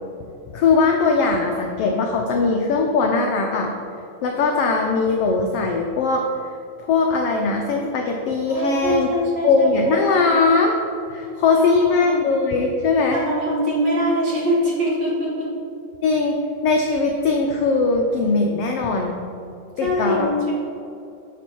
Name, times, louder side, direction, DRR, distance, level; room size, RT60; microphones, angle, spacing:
voice 1, 0.5-3.7 4.2-6.5 6.8-9.1 9.4-10.8 11.1-13.2 16.0-16.4 16.6-19.2 19.8-20.3, left 4 dB, 85° left, 2 dB, 1.3 m, -20 dB
voice 2, 8.5-10.3 11.5-12.2 13.1-15.5 19.8-20.5, equal, 45° right, -5 dB, 1.6 m, -23 dB
10.0 x 6.2 x 4.5 m, 2.6 s
omnidirectional pair, 3.5 m